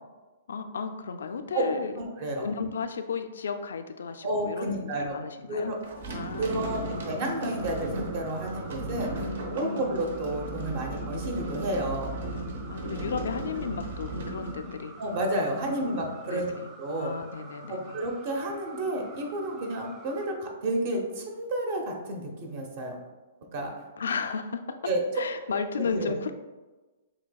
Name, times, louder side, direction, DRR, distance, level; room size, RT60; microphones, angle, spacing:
voice 1, 0.5-2.0 2.4-5.8 6.1-7.0 9.2-9.9 12.7-14.9 15.6-16.7 17.0-18.0 24.0-24.8 25.2-26.3, left 5 dB, 90° left, 8 dB, 0.4 m, -34 dB
voice 2, 2.0-2.5 4.2-5.2 5.5-5.8 6.4-9.1 9.5-12.1 15.0-16.5 16.8-17.1 17.7-23.0 23.5-23.7 24.8-25.0 25.8-26.2, right 1 dB, 50° right, 2 dB, 0.8 m, -31 dB
sound 1, 5.8-15.3, right 2 dB, 80° right, 0.9 m, -36 dB
sound 2, 6.5-20.3, right 3 dB, 25° right, 0.4 m, -48 dB
7.0 x 2.8 x 2.3 m, 1.2 s
hypercardioid pair, 150°, 0 cm